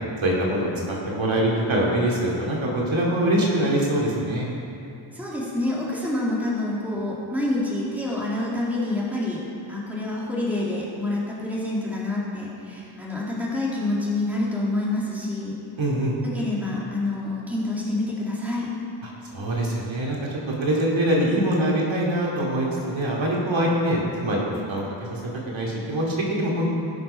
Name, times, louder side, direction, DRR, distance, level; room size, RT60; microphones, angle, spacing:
voice 1, 0.2-4.5 15.8-16.1 19.3-24.8 25.1-25.2 25.5-26.7, right 1 dB, 75° right, -4 dB, 2.6 m, -24 dB
voice 2, 5.1-9.4 9.7-15.6 16.2-18.7, left 2 dB, 5° right, -6 dB, 2.3 m, -27 dB
17.0 x 6.5 x 5.6 m, 2.7 s
wide cardioid pair, 155°, 47 cm